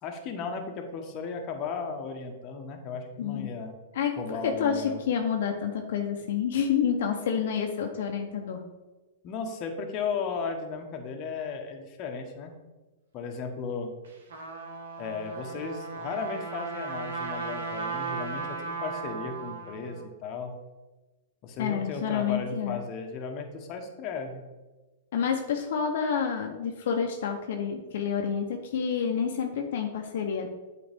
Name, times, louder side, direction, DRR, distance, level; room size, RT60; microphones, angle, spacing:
voice 1, 0.0-3.7 4.1-5.0 9.2-12.5 13.1-13.9 15.0-20.5 21.4-24.4, left 5 dB, 35° left, 3 dB, 1.0 m, -35 dB
voice 2, 3.2-3.5 3.9-8.6 21.6-22.8 25.1-30.5, left 7 dB, 65° left, 3 dB, 0.7 m, -29 dB
Trumpet, 14.0-20.0, right 4 dB, 85° right, 1.3 m, -36 dB
7.9 x 4.2 x 3.5 m, 1.2 s
hypercardioid pair, 135°, 0 cm